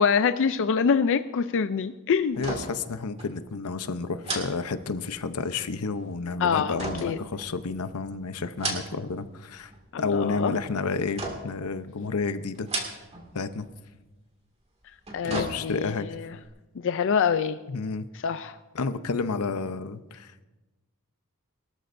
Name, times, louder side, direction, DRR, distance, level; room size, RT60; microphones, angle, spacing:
voice 1, 0.0-2.5 6.4-6.7 7.0-7.2 9.9-10.5 15.1-16.3 16.8-17.6 18.2-18.6, left 6 dB, 60° left, 10 dB, 0.4 m, -25 dB
sound 1, 2.3-2.9 3.2-3.3 4.2-5.3 6.8-7.9 8.4-9.2 9.5-10.1 11.2-11.7 12.5-13.3 13.6-13.7 14.8-16.0 16.4-16.5, right 2 dB, 30° right, 2.2 m, -35 dB
voice 2, 2.4-9.7 10.0-13.0 13.3-13.7 15.2-16.1 17.7-18.1 18.7-20.4, left 4 dB, 90° left, 11 dB, 0.7 m, -31 dB
22.5 x 13.0 x 2.6 m, 1.1 s
head